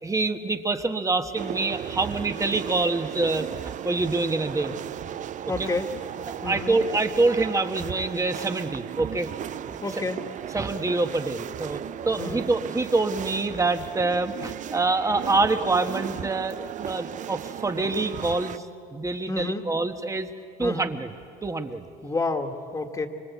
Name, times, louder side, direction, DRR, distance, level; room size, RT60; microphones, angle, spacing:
voice 1, 0.0-3.5 3.8-4.7 5.6-5.7 6.4-9.3 10.5-11.8 12.0-18.6 18.9-20.3 20.6-21.1 21.4-21.9, right 3 dB, 20° right, 7 dB, 1.4 m, -26 dB
sound 1, 1.4-18.6, right 10 dB, 45° right, 0.6 m, -35 dB
voice 2, 5.5-5.9 6.4-6.7 9.8-10.2 12.2-12.5 19.3-19.7 20.6-20.9 22.0-23.1, left 3 dB, 20° left, 5 dB, 1.9 m, -29 dB
25.0 x 24.0 x 8.4 m, 2.4 s
cardioid pair, 110°, 17 cm